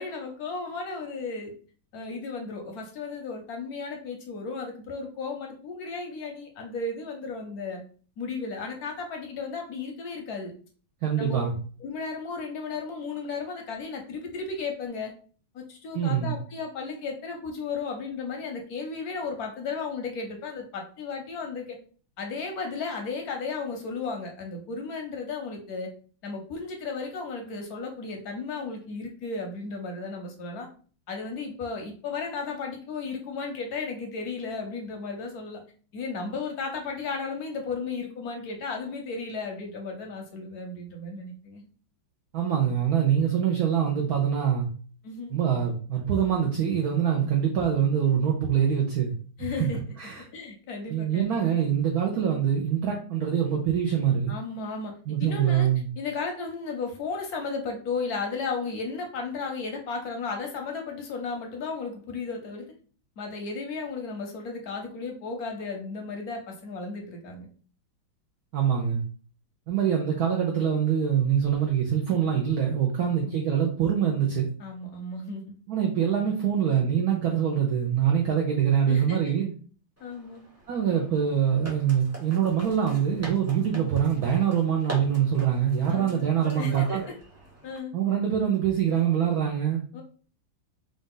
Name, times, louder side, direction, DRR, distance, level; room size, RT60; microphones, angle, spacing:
voice 1, 0.0-1.5 1.9-7.8 8.2-10.5 11.2-11.5 11.8-15.1 15.5-21.8 22.2-25.9 26.2-30.7 31.1-35.6 35.9-41.7 45.0-45.3 49.4-49.8 50.3-51.4 54.3-54.9 55.2-55.7 56.0-62.7 63.2-67.5 73.0-73.3 74.6-75.5 78.9-79.2 80.0-80.4 85.9-86.2 86.5-87.0 87.6-87.9 89.9-90.0, left 4 dB, 65° left, 2 dB, 1.0 m, -34 dB
voice 2, 11.0-11.5 15.9-16.4 42.3-44.7 45.3-49.1 49.4-49.7 50.0-50.2 50.9-54.3 55.1-55.9 68.5-69.0 69.7-74.5 75.7-79.5 80.7-87.0 87.9-89.8, right 8 dB, 70° right, -1 dB, 0.9 m, -24 dB
sound 1, 80.0-87.8, equal, 25° right, 0.3 m, -44 dB
3.9 x 2.4 x 3.7 m, 0.42 s
omnidirectional pair, 2.3 m